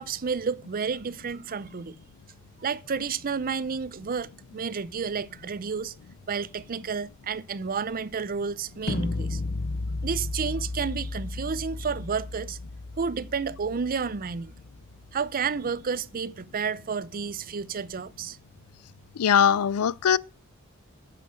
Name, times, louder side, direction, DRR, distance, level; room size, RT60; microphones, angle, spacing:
voice 1, 0.0-2.0 2.6-5.9 6.3-9.4 10.0-12.6 13.0-14.5 15.1-18.4, right 5 dB, 40° right, 0.5 m, -31 dB
sound 1, 8.9-14.8, left 2 dB, 50° left, 0.8 m, -34 dB
voice 2, 19.2-20.2, left 8 dB, 90° left, 0.4 m, -21 dB
9.4 x 7.5 x 6.2 m
head